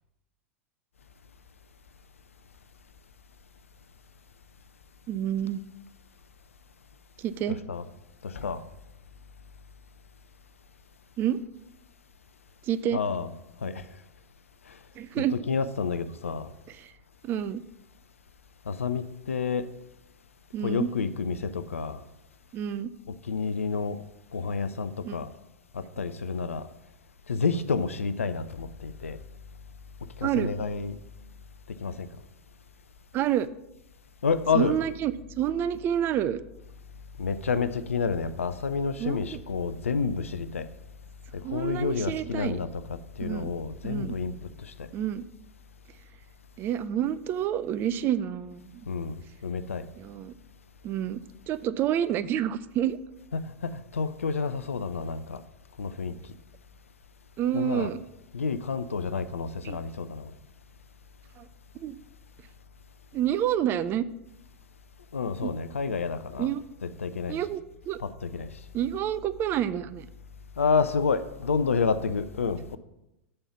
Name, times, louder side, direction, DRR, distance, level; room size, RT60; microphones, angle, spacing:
voice 1, 5.1-5.6 7.2-7.6 11.2-11.4 12.6-13.0 15.0-15.3 16.7-16.9 17.2-17.6 20.5-20.9 22.5-22.9 25.0-25.2 30.2-30.5 33.1-33.5 34.5-36.4 39.0-39.4 41.4-42.6 43.2-43.5 43.8-44.1 44.9-45.3 46.6-48.9 50.0-50.3 50.8-53.0 57.4-58.0 59.6-59.8 61.4-61.5 61.7-62.0 63.1-64.0 65.4-65.5 66.4-66.6 67.3-67.6 67.9-68.0 68.7-70.1, right 10 dB, 30° right, 0.4 m, -28 dB
voice 2, 7.5-7.9 8.2-8.6 12.9-13.3 13.6-13.9 14.7-14.8 15.2-16.5 18.7-19.7 20.6-22.0 23.2-24.0 24.3-25.3 25.7-26.7 27.3-29.2 30.2-31.0 31.7-32.1 34.2-34.8 37.2-40.7 41.4-44.3 44.6-44.9 48.9-49.9 53.3-55.4 55.8-56.2 57.5-57.9 58.3-60.3 65.1-66.5 66.8-67.4 68.0-68.5 70.6-72.8, left 5 dB, 75° left, 0.4 m, -29 dB
7.0 x 4.3 x 6.8 m
figure-of-eight pair, 95°, 7 cm